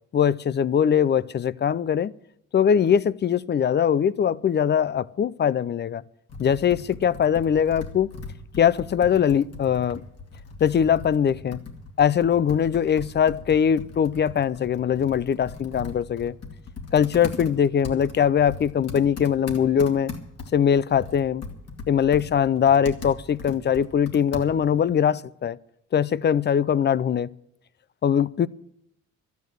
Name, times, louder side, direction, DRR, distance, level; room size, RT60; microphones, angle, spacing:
voice 1, 0.1-2.1 2.5-6.0 6.4-8.2 8.6-10.0 10.6-11.6 12.0-16.3 16.9-20.1 20.5-21.4 21.9-25.6 25.9-27.3 28.0-28.5, left 8 dB, 35° left, 0.5 m, -21 dB
Computer keyboard, 6.3-24.8, left 4 dB, 55° left, 2.4 m, -39 dB
13.0 x 9.4 x 7.9 m
cardioid pair, 90°, 30 cm